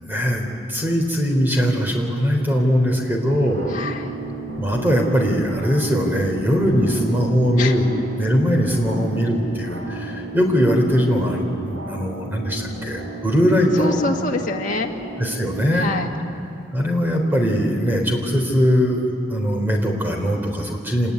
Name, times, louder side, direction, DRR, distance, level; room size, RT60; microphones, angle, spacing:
voice 1, 0.0-3.7 4.6-7.9 8.2-14.0 15.2-15.9 16.7-21.1, equal, 10° right, 1 dB, 3.4 m, -20 dB
sound 1, 3.3-16.0, right 3 dB, 85° right, 3.9 m, -33 dB
voice 2, 3.7-4.1 7.6-7.7 13.8-14.9 15.7-16.1, left 3 dB, 40° left, -1 dB, 1.9 m, -25 dB
25.5 x 20.0 x 9.7 m, 2.6 s
head